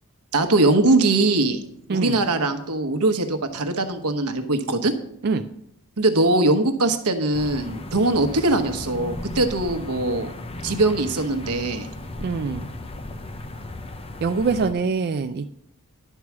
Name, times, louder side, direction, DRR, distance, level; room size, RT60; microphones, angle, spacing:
voice 1, 0.3-1.6 1.9-4.9 6.0-10.3 10.6-11.9, right 2 dB, 85° right, 8 dB, 1.1 m, -21 dB
sound 1, 7.3-14.7, left 2 dB, 25° left, 0.6 m, -36 dB
voice 2, 12.2-12.7 14.2-15.5, right 4 dB, 45° right, 7 dB, 0.4 m, -24 dB
11.0 x 4.7 x 7.2 m, 0.74 s
head